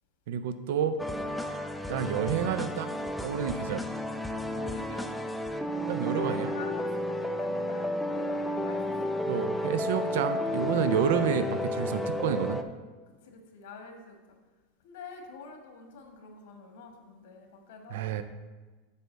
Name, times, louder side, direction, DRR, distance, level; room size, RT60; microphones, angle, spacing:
voice 1, 0.3-1.0 1.9-2.9 3.2-3.9 5.9-6.5 9.3-12.6 17.9-18.2, right 8 dB, 70° right, 10 dB, 0.5 m, -29 dB
sound 1, 1.0-12.6, left 1 dB, 5° left, 0.3 m, -32 dB
sound 2, 2.9-11.1, right 4 dB, 45° right, 1.2 m, -50 dB
voice 2, 4.5-5.1 6.1-9.6 13.1-14.4 14.8-18.0, left 4 dB, 80° left, 3 dB, 1.4 m, -47 dB
8.3 x 3.5 x 6.5 m, 1.3 s
supercardioid pair, 155°, 0 cm